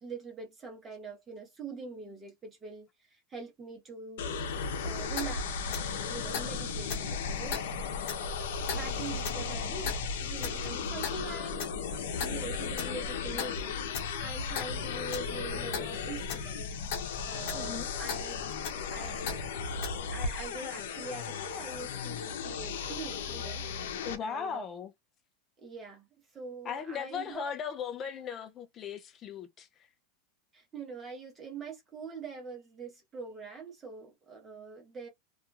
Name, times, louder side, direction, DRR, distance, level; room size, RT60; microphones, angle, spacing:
voice 1, 0.0-4.3 4.8-7.6 8.7-13.8 14.2-16.7 17.2-18.4 18.9-19.5 20.1-23.7 24.2-24.6 25.6-26.1 26.3-27.5 30.5-35.1, right 4 dB, 15° right, 1.1 m, -44 dB
sound 1, 4.2-24.2, left 5 dB, 80° left, 0.7 m, -36 dB
Clock, 5.1-20.0, left 5 dB, 50° left, 1.0 m, -40 dB
voice 2, 17.5-17.9 24.0-24.9 26.6-29.7, left 7 dB, 20° left, 0.4 m, -37 dB
2.9 x 2.5 x 2.4 m
supercardioid pair, 175°, 0 cm